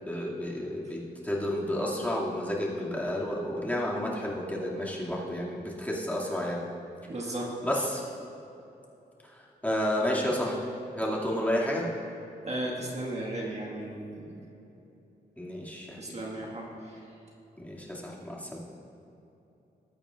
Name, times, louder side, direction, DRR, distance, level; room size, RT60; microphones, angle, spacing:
voice 1, 0.0-6.6 7.6-8.0 9.3-10.6 10.9-11.9 15.4-16.2 17.6-18.6, left 1 dB, 10° left, -5 dB, 2.3 m, -31 dB
voice 2, 7.1-7.8 12.4-14.4 16.0-17.0, right 1 dB, 40° right, -2 dB, 1.7 m, -36 dB
19.5 x 8.8 x 2.5 m, 2.9 s
cardioid pair, 80°, 17 cm